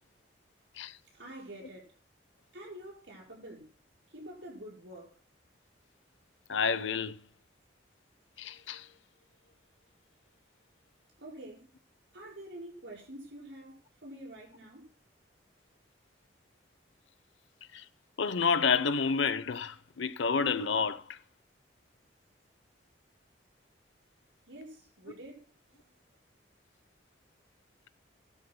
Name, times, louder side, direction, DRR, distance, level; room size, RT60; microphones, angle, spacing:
voice 1, 1.0-1.9 2.5-3.7 4.1-5.2 11.2-11.6 12.1-14.9 24.5-25.8, right 1 dB, 70° right, 5.6 m, -47 dB
voice 2, 6.5-7.2 8.4-8.9 17.7-17.8 18.2-21.2, left 5 dB, 80° left, 0.8 m, -29 dB
19.5 x 12.5 x 2.2 m
head